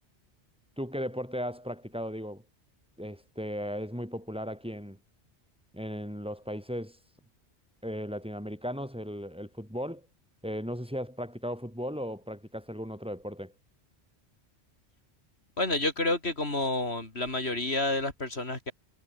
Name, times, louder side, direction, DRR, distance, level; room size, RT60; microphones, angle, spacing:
voice 1, 0.8-2.4 3.0-5.0 5.7-7.0 7.8-10.1 10.4-13.5, equal, 5° right, 7.7 m, -36 dB
voice 2, 15.6-18.7, left 2 dB, 65° left, 4.1 m, -29 dB
omnidirectional pair, 1.1 m